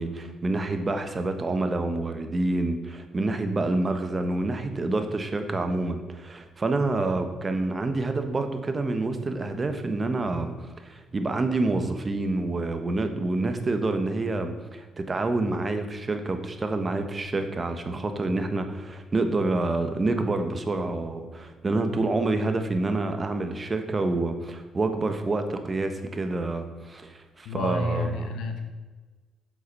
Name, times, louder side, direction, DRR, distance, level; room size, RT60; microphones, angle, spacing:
voice 1, 0.0-28.2, right 2 dB, 30° right, 7 dB, 1.2 m, -27 dB
voice 2, 27.4-28.7, left 1 dB, 80° left, 6 dB, 1.3 m, -30 dB
8.0 x 7.8 x 5.5 m, 1.3 s
cardioid pair, 90°, 0 cm